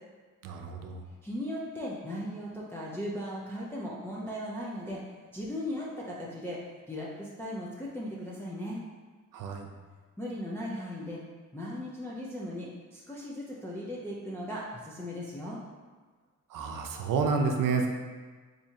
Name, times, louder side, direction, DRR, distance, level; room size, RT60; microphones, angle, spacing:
voice 1, 0.4-1.0 9.3-9.7 16.5-17.9, right 5 dB, 80° right, 3 dB, 0.6 m, -29 dB
voice 2, 1.2-5.0 5.3-6.6 6.9-8.8 10.2-11.2 11.5-15.6, equal, 5° left, -6 dB, 0.4 m, -37 dB
4.5 x 2.7 x 2.7 m, 1.4 s
cardioid pair, 120°, 32 cm